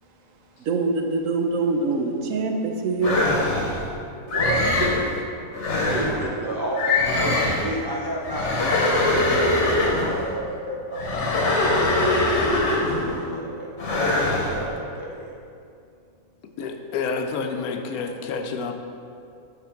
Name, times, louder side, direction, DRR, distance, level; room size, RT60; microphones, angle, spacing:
voice 1, 0.7-3.3, right 3 dB, 70° right, 3 dB, 0.9 m, -24 dB
sound 1, 3.0-3.8 4.3-5.0 5.5-6.2 6.7-7.7 8.2-10.2 10.9-13.1 13.8-14.6, left 2 dB, 55° left, 1.2 m, -22 dB
voice 2, 4.3-5.1 5.9-11.8 12.8-13.7 14.2-15.4, right 1 dB, 35° right, -4 dB, 0.3 m, -31 dB
voice 3, 16.6-18.7, left 5 dB, 80° left, 5 dB, 1.1 m, -29 dB
6.0 x 5.9 x 4.4 m, 2.5 s
omnidirectional pair, 1.6 m